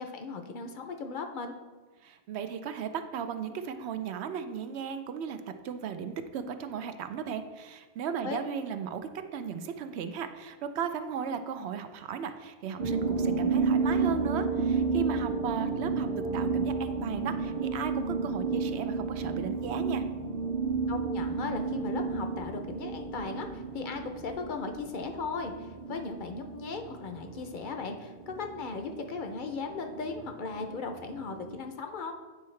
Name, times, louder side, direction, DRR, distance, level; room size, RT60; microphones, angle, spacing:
voice 1, 0.0-1.5 8.2-8.4 20.9-32.1, left 4 dB, 55° left, 5 dB, 0.6 m, -37 dB
voice 2, 2.0-20.0, right 7 dB, 80° right, 9 dB, 0.8 m, -36 dB
sound 1, 12.8-31.6, right 4 dB, 45° right, 0.6 m, -32 dB
8.8 x 4.6 x 3.2 m, 1.3 s
omnidirectional pair, 1.1 m